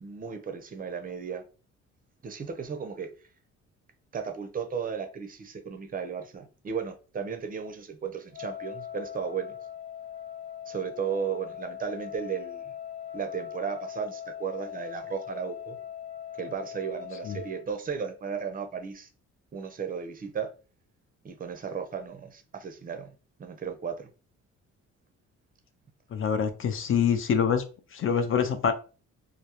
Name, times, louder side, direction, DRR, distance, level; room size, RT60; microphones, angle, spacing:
voice 1, 0.0-1.4 2.2-3.1 4.1-9.5 10.7-12.7 13.1-15.8 16.4-19.1 19.5-20.5 21.2-23.1 23.4-24.1, right 7 dB, 30° right, 0.5 m, -35 dB
Wind instrument woodwind instrument, 8.3-17.7, left 9 dB, 70° left, 0.8 m, -40 dB
voice 2, 26.1-27.6 27.9-28.7, left 7 dB, 45° left, 0.5 m, -25 dB
2.2 x 2.0 x 2.8 m
cardioid pair, 90°, 30 cm